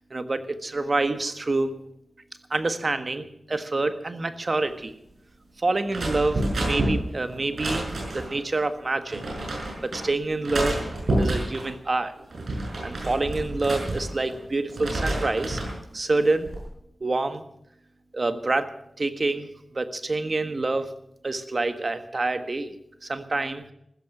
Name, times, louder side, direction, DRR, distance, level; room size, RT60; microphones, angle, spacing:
voice 1, 0.1-1.7 2.5-5.0 5.6-7.8 8.1-9.2 9.8-10.9 11.2-12.1 12.5-15.6 15.9-16.5 17.0-17.4 18.1-18.7 19.0-20.9 21.2-22.8 23.0-23.7, right 2 dB, 50° right, 9 dB, 1.5 m, -27 dB
sound 1, 5.9-8.4 9.1-10.0 10.4-11.7 12.2-14.4 14.7-15.8 16.2-16.6, right 1 dB, 75° right, 6.4 m, -29 dB
15.0 x 14.0 x 6.0 m, 0.77 s
cardioid pair, 40°, 0 cm